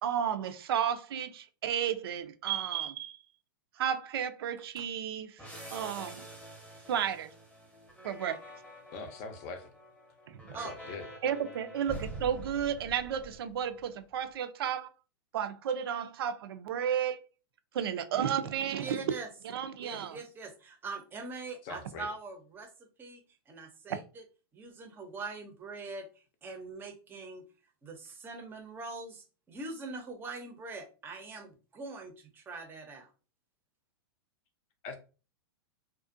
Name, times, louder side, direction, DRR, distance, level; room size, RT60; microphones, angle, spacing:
voice 1, 0.0-3.2 3.8-5.4 5.7-6.2 6.9-7.3 8.0-8.4 11.2-14.9 15.3-17.2 17.7-19.0 19.4-20.2, right 9 dB, 75° right, 0.4 m, -32 dB
sound 1, 5.4-13.9, right 1 dB, 10° left, 0.8 m, -46 dB
voice 2, 8.9-9.7 10.5-11.1 21.6-22.1 34.8-35.0, left 4 dB, 40° left, 0.5 m, -42 dB
voice 3, 18.8-19.3 19.8-22.7 23.0-24.2 24.5-26.1 26.4-27.4 27.8-33.1, right 3 dB, 15° right, 0.6 m, -43 dB
2.4 x 2.1 x 2.5 m
hypercardioid pair, 135°, 13 cm